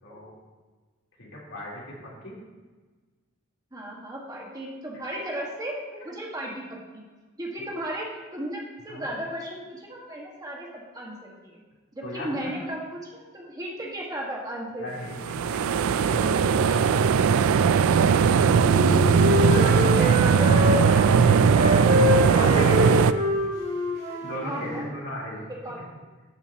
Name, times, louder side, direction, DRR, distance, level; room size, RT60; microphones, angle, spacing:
voice 1, 0.0-0.4 1.2-2.0 2.2-2.3 8.9-9.1 12.0-12.5 14.8-17.5 19.5-21.9 22.3-23.3 24.1-25.8, left 1 dB, 70° left, -5 dB, 3.8 m, -37 dB
voice 2, 3.7-5.8 6.0-6.8 7.4-11.6 11.9-14.9 19.4-20.9 24.4-24.9 25.5-25.8, right 1 dB, 20° right, -2 dB, 1.7 m, -35 dB
sound 1, 15.1-23.1, right 6 dB, 75° right, 0.4 m, -19 dB
Wind instrument woodwind instrument, 17.9-21.0 21.4-24.9, left 2 dB, 35° right, 3.3 m, -26 dB
12.0 x 11.0 x 3.0 m, 1.3 s
head